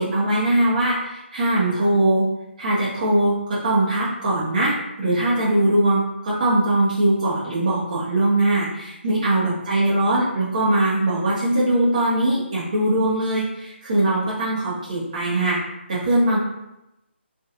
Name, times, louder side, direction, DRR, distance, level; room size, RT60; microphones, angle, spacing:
voice 1, 0.0-2.2 2.6-15.6 15.9-16.4, right 1 dB, 35° right, -8 dB, 0.6 m, -21 dB
2.9 x 2.2 x 2.4 m, 0.90 s
hypercardioid pair, 165°, 7 cm